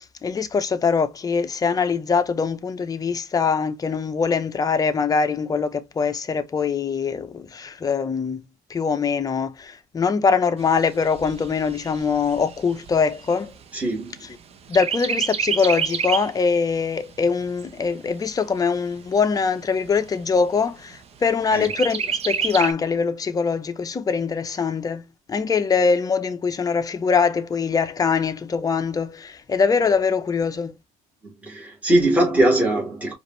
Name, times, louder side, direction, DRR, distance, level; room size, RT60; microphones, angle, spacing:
voice 1, 0.0-8.4 8.7-13.5 14.7-30.7, left 5 dB, 25° left, 0.7 m, -23 dB
Chirp tweet, 10.6-14.3 14.7-16.4 16.8-16.9 17.3-18.3 18.9-19.0 19.3-19.4 19.9-20.4 21.6-22.7, right 7 dB, 40° right, 0.7 m, -28 dB
voice 2, 13.7-14.2 21.5-21.7 31.4-33.1, right 1 dB, 10° right, 1.8 m, -21 dB
4.9 x 2.6 x 3.1 m
cardioid pair, 135°, 16 cm